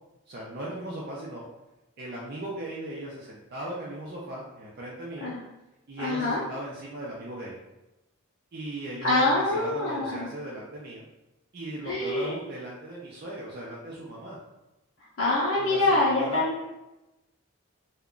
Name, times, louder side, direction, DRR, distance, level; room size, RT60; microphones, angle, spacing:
voice 1, 0.3-1.4 2.0-5.3 5.9-7.6 8.5-11.0 11.5-14.4 15.6-16.4, right 1 dB, 45° right, -5 dB, 0.4 m, -38 dB
voice 2, 6.0-6.4 9.0-10.3 11.8-12.4 15.2-16.6, left 2 dB, 60° left, -8 dB, 0.6 m, -25 dB
2.3 x 2.2 x 3.6 m, 0.99 s
head